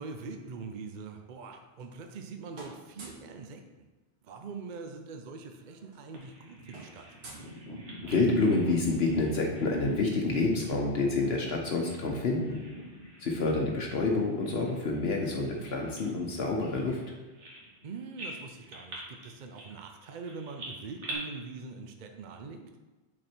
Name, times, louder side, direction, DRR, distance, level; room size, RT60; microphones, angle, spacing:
voice 1, 0.0-3.6 4.2-7.1 17.8-22.7, right 4 dB, 50° right, 5 dB, 0.6 m, -43 dB
sound 1, 1.5-2.3 2.5-3.3 4.7-4.8 5.1-5.3 5.5-8.2, right 2 dB, 70° right, 1.5 m, -51 dB
Bird vocalization bird call bird song, 6.1-12.1 12.4-13.3 13.6-13.8 14.4-17.8 18.2-21.1, right 1 dB, 90° right, 1.8 m, -44 dB
voice 2, 8.0-12.6 13.2-17.0, left 3 dB, 65° left, 0 dB, 1.0 m, -28 dB
6.3 x 4.2 x 4.4 m, 1.2 s
omnidirectional pair, 1.2 m